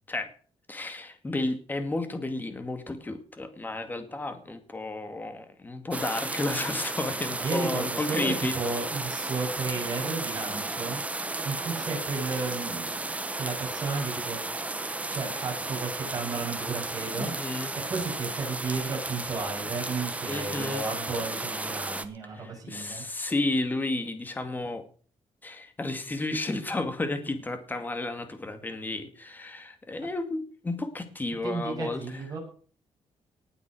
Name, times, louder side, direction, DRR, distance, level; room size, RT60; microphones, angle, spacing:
voice 1, 0.7-8.6 17.2-17.7 20.3-20.8 22.3-24.9 25.4-32.2, left 2 dB, 15° left, 8 dB, 2.1 m, -32 dB
sound 1, 5.9-22.0, right 2 dB, 10° right, 1.0 m, -34 dB
voice 2, 7.4-11.0 11.4-14.5 15.1-17.3 17.9-23.1 31.4-32.4, right 4 dB, 35° right, 0 dB, 7.2 m, -33 dB
18.5 x 7.9 x 6.4 m, 0.43 s
wide cardioid pair, 180°, 11 cm